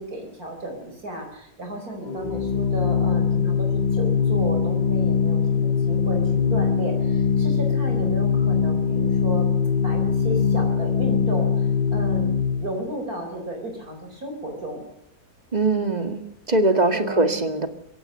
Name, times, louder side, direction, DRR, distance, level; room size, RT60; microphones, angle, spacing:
voice 1, 0.0-9.5 9.8-14.8 15.7-16.2 16.9-17.4, right 1 dB, 70° right, 3 dB, 5.1 m, -34 dB
Organ, 2.1-12.8, left 6 dB, 30° left, 1.4 m, -22 dB
voice 2, 15.5-17.7, right 2 dB, 25° right, 9 dB, 2.1 m, -22 dB
24.0 x 17.0 x 6.7 m, 0.77 s
omnidirectional pair, 1.6 m